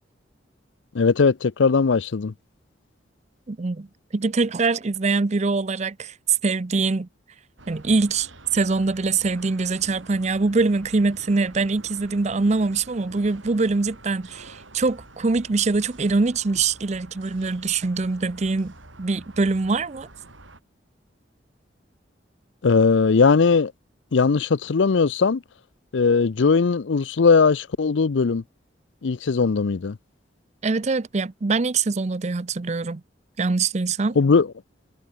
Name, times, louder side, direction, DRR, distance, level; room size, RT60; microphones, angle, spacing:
voice 1, 0.9-2.3 22.6-23.7 24.1-25.4 25.9-28.4 29.0-30.0 34.2-34.5, left 4 dB, 75° left, 0.5 m, -19 dB
voice 2, 3.5-3.9 4.1-7.1 7.7-18.7 19.0-20.1 30.6-33.0 33.4-34.2, right 3 dB, 35° right, 0.5 m, -23 dB
sound 1, 7.6-20.6, right 2 dB, 90° right, 5.9 m, -47 dB
head